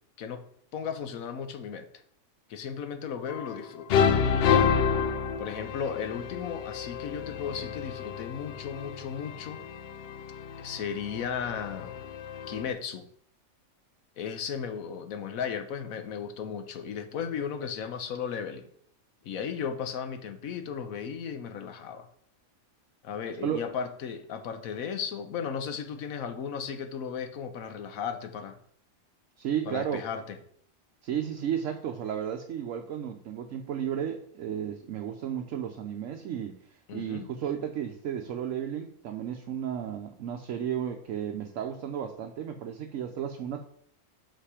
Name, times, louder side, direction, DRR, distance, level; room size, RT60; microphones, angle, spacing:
voice 1, 0.7-1.9 2.5-3.9 4.2-4.7 5.4-9.6 10.6-12.0 12.5-13.1 14.2-18.7 19.2-22.1 23.0-28.6 29.7-30.4 36.9-37.3, left 7 dB, 85° left, 8 dB, 1.2 m, -35 dB
sound 1, 3.3-3.6 3.9-12.7, left 7 dB, 65° left, 0.6 m, -29 dB
voice 2, 29.4-30.0 31.0-36.6 36.9-43.6, right 9 dB, 70° right, 4 dB, 1.0 m, -33 dB
5.8 x 5.7 x 4.9 m, 0.64 s
omnidirectional pair, 1.4 m